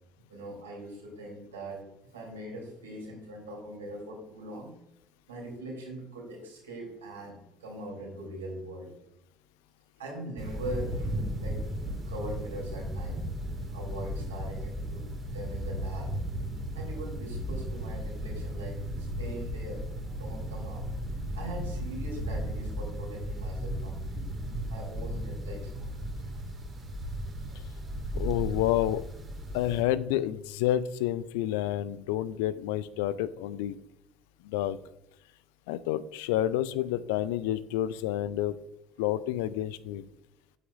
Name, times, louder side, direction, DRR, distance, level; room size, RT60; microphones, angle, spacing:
voice 1, 0.3-4.7 5.3-8.9 10.0-13.2 13.7-15.0 15.3-16.1 16.7-19.9 20.2-20.9 21.3-24.0 24.6-26.4 27.5-27.8, right 1 dB, 80° right, -1 dB, 3.2 m, -41 dB
sound 1, 10.4-29.8, equal, 30° right, 2.0 m, -35 dB
voice 2, 28.1-29.0 29.5-33.8 34.4-34.8 35.7-38.6 39.0-40.1, left 13 dB, 70° left, 17 dB, 0.4 m, -29 dB
9.2 x 8.5 x 2.5 m, 0.86 s
figure-of-eight pair, 60°, 0 cm